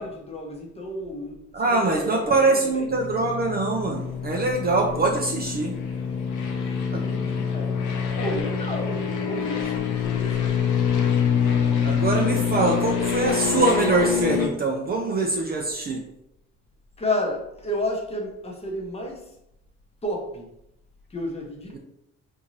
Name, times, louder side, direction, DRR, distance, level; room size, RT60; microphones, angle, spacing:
voice 1, 0.0-2.9 6.6-7.8 8.2-10.8 17.0-19.3 20.0-20.5 21.1-21.8, left 1 dB, 20° left, 0 dB, 0.7 m, -32 dB
voice 2, 1.5-5.8 6.9-7.1 11.8-16.0, right 3 dB, 30° right, 1 dB, 0.4 m, -23 dB
sound 1, 2.9-14.5, left 7 dB, 75° left, 0.6 m, -25 dB
3.8 x 2.6 x 3.0 m, 0.81 s
cardioid pair, 145°, 30 cm